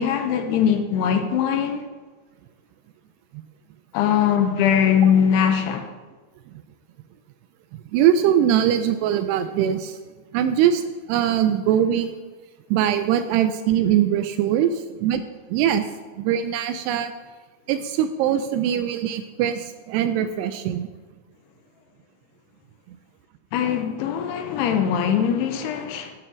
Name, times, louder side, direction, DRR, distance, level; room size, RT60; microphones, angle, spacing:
voice 1, 0.0-1.9 3.9-5.9 23.5-26.1, left 8 dB, 75° left, 2.6 m, -21 dB
voice 2, 7.9-10.0 10.3-10.8 11.1-12.2 12.7-15.2 15.5-15.8 16.2-17.1 17.7-20.9, right 10 dB, 85° right, 2.5 m, -21 dB
11.0 x 7.7 x 6.2 m
omnidirectional pair, 5.1 m